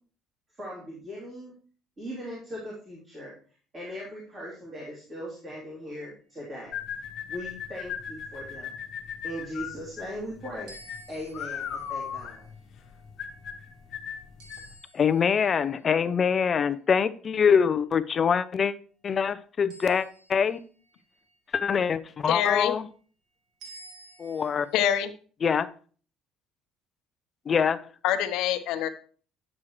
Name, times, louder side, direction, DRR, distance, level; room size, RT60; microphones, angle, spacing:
voice 1, 0.5-1.5 2.0-3.3 3.7-6.8 7.3-8.8 9.2-10.7 11.1-12.5, equal, 25° right, -5 dB, 3.0 m, -39 dB
sound 1, 6.7-14.7, left 8 dB, 45° left, 1.2 m, -37 dB
sound 2, 10.7-16.2 19.7-21.8 23.6-24.9, right 2 dB, 85° right, 1.9 m, -53 dB
voice 2, 14.9-18.7 19.0-20.6 21.5-22.9 24.2-24.7 25.4-25.7 27.5-27.8, left 6 dB, 25° left, 13 dB, 0.4 m, -24 dB
voice 3, 22.3-22.7 24.7-25.1 28.0-28.9, left 11 dB, 70° left, 7 dB, 0.9 m, -25 dB
9.9 x 7.2 x 3.2 m, 0.41 s
cardioid pair, 170°, 0 cm